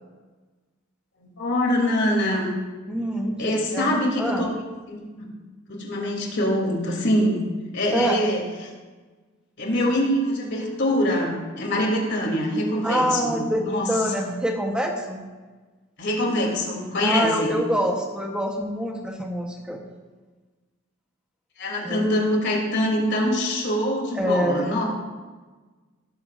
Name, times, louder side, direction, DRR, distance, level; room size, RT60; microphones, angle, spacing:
voice 1, 1.2-2.5 3.4-4.5 4.9-5.3 5.7-7.4 7.7-8.7 9.6-13.9 16.0-17.6 21.6-24.8, left 1 dB, 60° left, -1 dB, 3.0 m, -24 dB
voice 2, 2.9-4.5 7.9-8.3 12.8-15.2 17.0-19.8 21.8-22.1 24.1-24.8, equal, 5° right, 1 dB, 1.1 m, -26 dB
17.5 x 14.0 x 2.6 m, 1.3 s
head